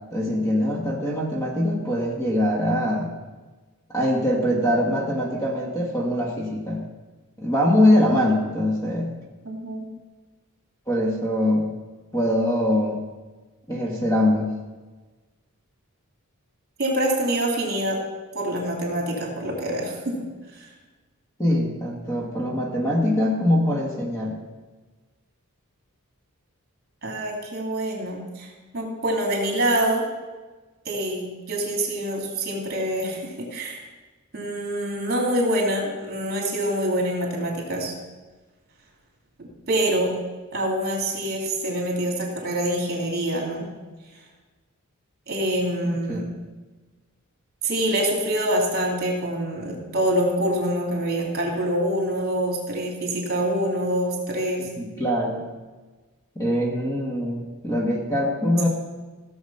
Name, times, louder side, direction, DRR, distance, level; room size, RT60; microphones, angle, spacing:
voice 1, 0.1-3.1 3.9-6.9 7.4-9.1 10.9-11.7 12.1-13.0 13.7-14.5 21.4-24.4 46.1-46.2 54.6-55.4 56.3-58.7, left 1 dB, 15° left, -1 dB, 1.6 m, -23 dB
voice 2, 9.4-9.8 16.8-18.0 18.3-20.2 20.5-20.7 27.0-30.0 30.8-33.8 34.3-37.9 39.4-40.1 40.5-43.6 45.3-46.3 47.6-54.7, right 1 dB, 45° right, -1 dB, 2.9 m, -25 dB
15.5 x 7.1 x 5.6 m, 1.3 s
head